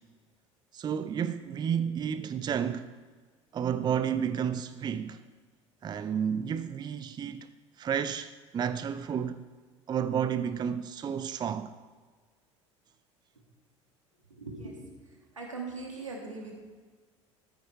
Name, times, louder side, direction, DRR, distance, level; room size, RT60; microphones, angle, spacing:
voice 1, 0.7-2.9 3.5-5.2 5.8-7.5 7.8-9.5 9.9-11.7, right 8 dB, 25° right, 0.5 m, -31 dB
voice 2, 14.3-14.8 15.3-16.6, right 3 dB, 85° right, 2.1 m, -40 dB
13.5 x 8.7 x 4.5 m
figure-of-eight pair, 65°, 16 cm